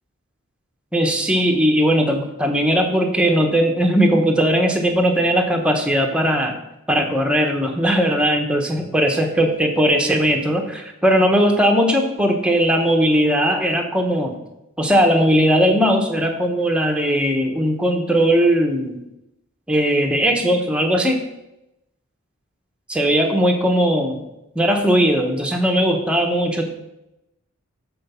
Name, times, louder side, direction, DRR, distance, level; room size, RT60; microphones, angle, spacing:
voice 1, 0.9-6.6 6.9-14.3 14.8-19.0 19.7-21.2 22.9-24.2 24.5-26.7, equal, 5° right, 3 dB, 1.1 m, -18 dB
12.5 x 4.6 x 5.7 m, 0.89 s
head